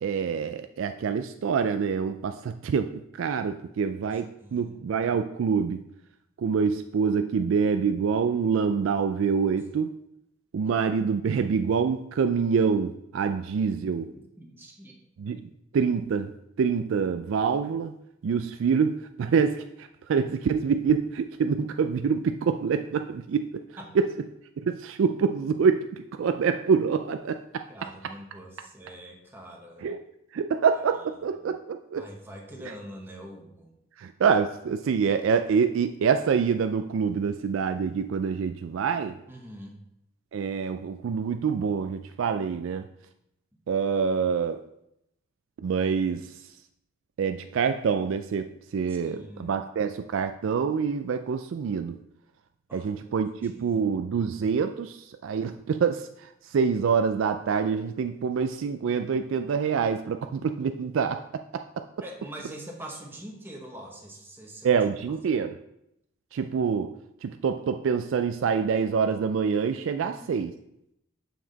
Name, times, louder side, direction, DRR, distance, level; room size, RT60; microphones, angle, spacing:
voice 1, 0.0-5.8 6.4-10.0 10.5-14.1 15.2-15.4 15.7-16.3 16.6-17.9 18.2-23.6 24.0-24.1 24.6-27.7 29.8-30.0 30.3-32.1 34.0-39.2 40.3-42.9 43.7-44.6 45.6-46.3 47.2-52.0 52.7-56.1 56.5-61.9 64.6-65.6 66.3-66.9 67.2-70.5, right 6 dB, 70° right, 8 dB, 0.3 m, -26 dB
voice 2, 4.1-5.1 9.6-9.7 10.6-10.7 14.0-15.0 23.8-23.9 27.7-29.9 30.7-31.3 32.0-33.7 39.3-39.8 48.9-49.7 52.7-52.9 53.4-53.8 62.0-64.8 70.0-70.5, right 1 dB, 10° right, -1 dB, 1.1 m, -44 dB
7.0 x 6.1 x 4.0 m, 0.79 s
head